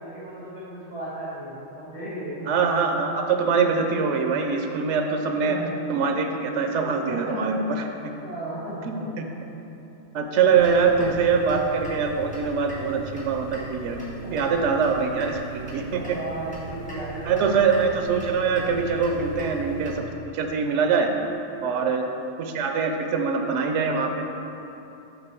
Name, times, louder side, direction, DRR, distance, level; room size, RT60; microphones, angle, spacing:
voice 1, 0.0-2.5 5.4-5.7 7.0-7.5 8.2-9.1 14.2-14.7 15.7-17.8 21.7-21.9, right 1 dB, 55° right, -10 dB, 1.6 m, -35 dB
voice 2, 2.5-5.6 5.9-7.9 8.9-9.2 10.1-14.0 14.3-16.2 17.2-20.0 20.3-21.1 21.6-22.0 22.4-24.2, right 5 dB, 85° right, 4 dB, 0.9 m, -23 dB
sound 1, 10.5-20.0, right 3 dB, 5° left, 1.3 m, -38 dB
7.0 x 4.0 x 4.3 m, 3.0 s
omnidirectional pair, 1.2 m